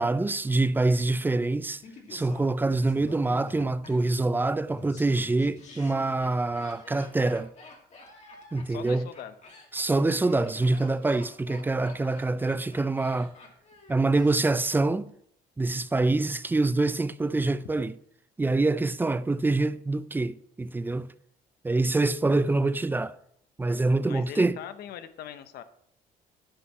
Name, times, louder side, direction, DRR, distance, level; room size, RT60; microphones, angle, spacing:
voice 1, 0.0-1.8 2.1-7.5 8.5-9.1 9.7-13.3 13.9-15.1 15.6-17.9 18.4-21.1 21.6-23.2 23.6-24.6, right 2 dB, 10° right, 0.4 m, -25 dB
Laughter, 1.8-14.8 15.1-15.2, left 3 dB, 40° left, 2.3 m, -48 dB
voice 2, 8.7-9.4 24.1-25.6, left 10 dB, 65° left, 0.8 m, -41 dB
11.5 x 5.4 x 5.5 m
cardioid pair, 110°, 17 cm